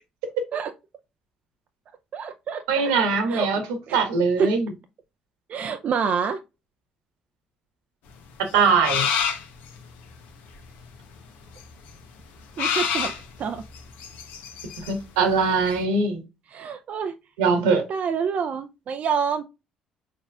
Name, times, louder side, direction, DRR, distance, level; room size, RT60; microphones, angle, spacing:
voice 1, 2.1-2.6 3.3-4.0 4.4-4.5 5.5-6.4 12.6-13.1 13.4-13.6 16.5-17.1 17.9-19.4, right 6 dB, 55° right, 0.4 m, -27 dB
voice 2, 2.7-3.6 3.9-4.7 8.5-9.2 14.9-16.2 17.4-17.8, right 4 dB, 85° right, 1.3 m, -21 dB
sound 1, 8.5-9.7 11.6-11.7 11.9-12.0 12.6-15.0 15.4-15.5 15.7-15.8, left 7 dB, 75° left, 0.8 m, -27 dB
4.8 x 4.2 x 2.3 m
hypercardioid pair, 55°, 3 cm